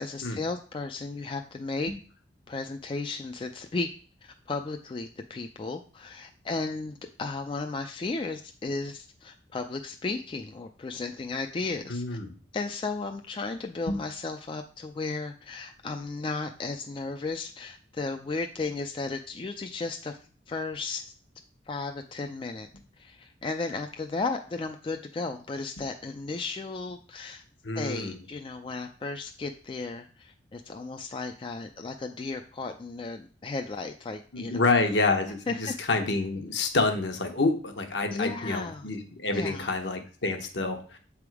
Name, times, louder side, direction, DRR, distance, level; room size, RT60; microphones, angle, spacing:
voice 1, 0.0-1.9 2.5-3.9 4.2-12.2 12.5-20.2 20.5-21.1 21.7-22.7 23.0-27.4 27.7-34.7 35.5-35.9 38.1-38.9 39.3-39.7, left 3 dB, 25° left, 5 dB, 0.3 m, -34 dB
voice 2, 11.9-12.3 13.9-14.0 27.6-28.2 34.3-41.0, left 3 dB, 65° left, 4 dB, 1.0 m, -28 dB
7.6 x 3.5 x 4.7 m, 0.41 s
head